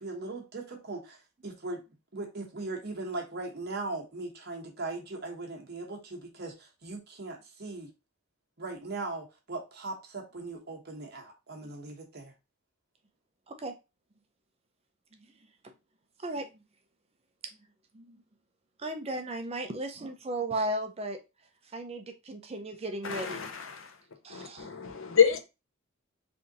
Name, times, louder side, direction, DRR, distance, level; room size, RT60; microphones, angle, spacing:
voice 1, 0.0-1.8 2.1-7.9 8.6-12.3, right 3 dB, 50° right, 1.0 m, -39 dB
voice 2, 16.2-16.6 17.9-18.2 18.8-21.2 21.7-23.4 24.2-24.7, right 1 dB, 30° right, 0.5 m, -35 dB
voice 3, 23.1-23.9 24.3-25.4, left 7 dB, 70° left, 0.7 m, -27 dB
3.4 x 2.7 x 3.8 m
head